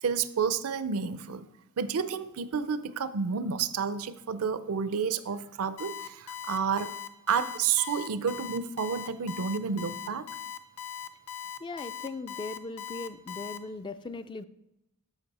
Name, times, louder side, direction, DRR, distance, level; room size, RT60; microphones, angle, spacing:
voice 1, 0.0-1.5 1.8-6.9 7.3-10.3, right 6 dB, 70° right, 14 dB, 0.5 m, -30 dB
Alarm, 5.8-13.6, left 10 dB, 65° left, 0.6 m, -39 dB
voice 2, 11.6-14.4, left 3 dB, 20° left, 12 dB, 0.3 m, -39 dB
13.0 x 5.2 x 4.1 m, 0.89 s
head